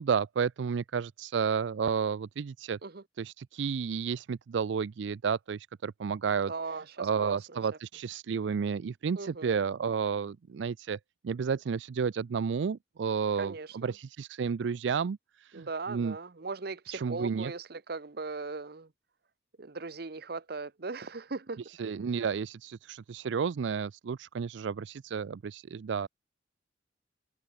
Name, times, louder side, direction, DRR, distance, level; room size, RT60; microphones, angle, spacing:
voice 1, 0.0-2.8 3.2-6.5 7.0-11.0 11.2-16.2 16.9-17.5 21.7-26.1, right 6 dB, 75° right, 0.4 m, -31 dB
voice 2, 6.5-7.4 9.2-9.6 13.4-13.9 15.5-18.9 19.6-21.6, right 3 dB, 55° right, 0.9 m, -38 dB
open air
head